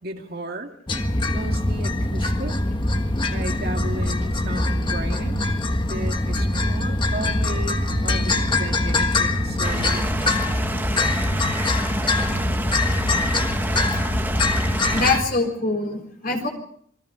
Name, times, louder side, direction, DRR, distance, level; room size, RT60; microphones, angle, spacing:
voice 1, 0.0-0.7 1.3-2.6 3.3-5.4 5.9-10.1, right 1 dB, 50° right, 3 dB, 2.3 m, -34 dB
sound 1, 0.9-15.2, left 2 dB, 25° left, 1.4 m, -23 dB
Stream, 9.6-15.2, right 2 dB, 10° right, 1.2 m, -31 dB
voice 2, 14.9-16.5, left 3 dB, 45° left, 3 dB, 4.1 m, -24 dB
27.5 x 21.0 x 5.1 m, 0.63 s
head